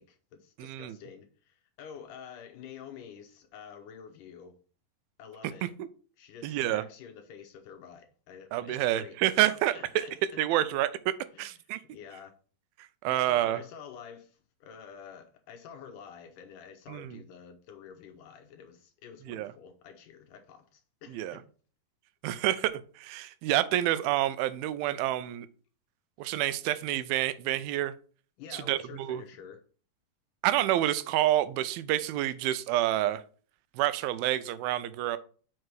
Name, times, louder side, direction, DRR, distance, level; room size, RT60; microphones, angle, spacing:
voice 1, 0.0-4.6 5.2-5.7 6.2-10.7 11.3-11.6 11.9-12.3 13.1-21.4 28.4-29.6, left 7 dB, 75° left, 2.1 m, -49 dB
voice 2, 0.6-1.0 5.8-5.9 6.4-6.8 8.5-10.0 10.4-10.9 11.4-11.8 13.0-13.6 16.9-17.2 19.3-19.5 21.1-21.4 22.2-25.5 26.2-27.9 28.5-29.2 30.4-33.2 33.8-35.2, right 14 dB, 85° right, 2.4 m, -28 dB
6.0 x 4.6 x 4.6 m
omnidirectional pair, 4.2 m